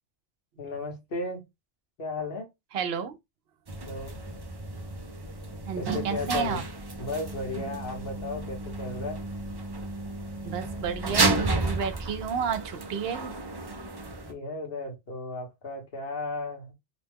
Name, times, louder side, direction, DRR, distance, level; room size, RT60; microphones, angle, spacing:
voice 1, 0.6-1.4 2.0-2.5 3.8-4.2 5.8-6.6 7.0-9.2 14.3-16.7, left 2 dB, 60° left, 1.2 m, -35 dB
voice 2, 2.7-3.1 5.7-6.6 10.4-13.3, right 7 dB, 70° right, 0.8 m, -31 dB
sound 1, 3.7-14.3, right 3 dB, 40° right, 0.3 m, -32 dB
2.9 x 2.1 x 3.4 m
omnidirectional pair, 1.1 m